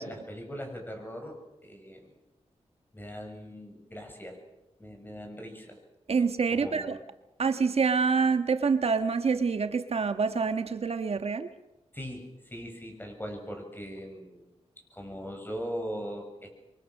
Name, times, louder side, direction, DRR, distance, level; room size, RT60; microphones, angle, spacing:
voice 1, 0.0-2.0 2.9-4.4 4.8-5.8 6.5-7.0 11.9-14.5 14.9-16.5, equal, 15° left, 3 dB, 7.7 m, -40 dB
voice 2, 6.1-7.0 7.4-11.5, right 5 dB, 60° right, 9 dB, 1.4 m, -26 dB
27.0 x 23.5 x 6.6 m, 0.96 s
wide cardioid pair, 80°, 12 cm